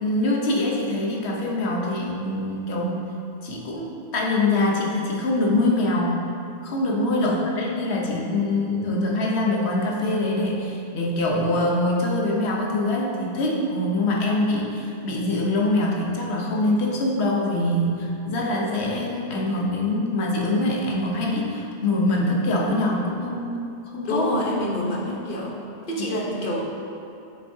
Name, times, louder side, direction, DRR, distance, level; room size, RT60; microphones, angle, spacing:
voice 1, 0.0-3.1 3.4-6.2 6.6-24.3, left 2 dB, 90° left, -2 dB, 1.1 m, -24 dB
voice 2, 7.1-7.5 24.0-25.6 25.9-26.6, equal, 55° left, -2 dB, 1.1 m, -27 dB
7.0 x 5.9 x 2.7 m, 2.8 s
omnidirectional pair, 1.1 m